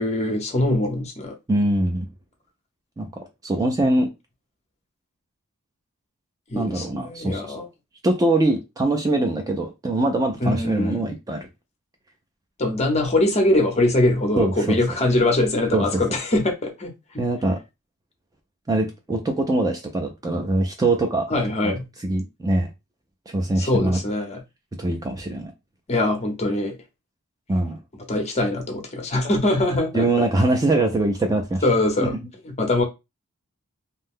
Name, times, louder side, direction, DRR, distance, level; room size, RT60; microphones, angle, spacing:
voice 1, 0.0-1.4 6.5-7.7 10.4-11.0 12.6-17.2 21.3-21.8 23.6-24.4 25.9-26.8 28.1-30.1 31.6-32.1 32.6-32.8, left 2 dB, 30° left, 0.8 m, -22 dB
voice 2, 1.5-2.1 3.0-4.1 6.5-7.6 8.0-11.5 14.4-14.8 15.7-15.8 17.2-17.6 18.7-21.3 21.6-21.7 22.0-22.7 23.3-24.0 24.8-25.5 27.5-27.8 29.9-31.6 32.0-32.2, right 2 dB, 15° right, 0.3 m, -23 dB
2.6 x 2.1 x 3.5 m
head